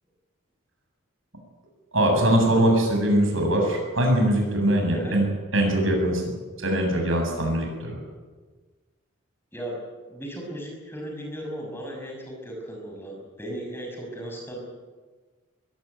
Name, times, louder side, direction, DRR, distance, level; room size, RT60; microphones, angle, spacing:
voice 1, 1.9-5.3 5.5-6.2 6.6-8.0, right 1 dB, 75° right, 2 dB, 7.6 m, -22 dB
voice 2, 10.1-14.6, equal, 10° left, 0 dB, 5.8 m, -36 dB
22.0 x 17.0 x 9.3 m, 1.4 s
head